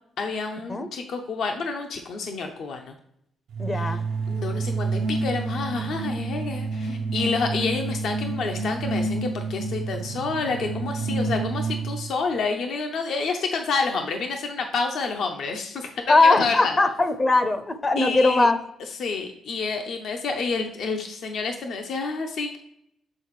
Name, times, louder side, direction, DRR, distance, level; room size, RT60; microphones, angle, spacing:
voice 1, 0.2-2.9 3.7-4.0 4.3-16.8 18.0-18.5 19.0-22.6, left 4 dB, 70° left, 4 dB, 0.6 m, -29 dB
sound 1, 3.5-12.1, right 3 dB, 75° right, 0.5 m, -28 dB
voice 2, 3.6-4.0 16.1-18.6, left 3 dB, 25° left, 10 dB, 0.5 m, -20 dB
7.6 x 4.1 x 3.1 m, 0.75 s
cardioid pair, 90°, 0 cm